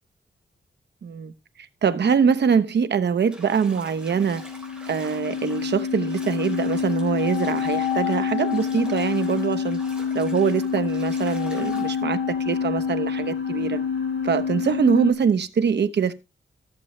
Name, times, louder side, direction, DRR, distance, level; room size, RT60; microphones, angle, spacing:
voice 1, 1.0-1.3 1.8-4.4 4.9-9.8 10.1-13.8 14.2-16.1, right 6 dB, 60° right, 0.8 m, -23 dB
Bathtub (filling or washing), 3.2-12.0, right 1 dB, 5° right, 3.2 m, -46 dB
sound 1, 4.0-15.1, left 6 dB, 65° left, 2.1 m, -27 dB
14.5 x 6.9 x 3.1 m
wide cardioid pair, 150°, 20 cm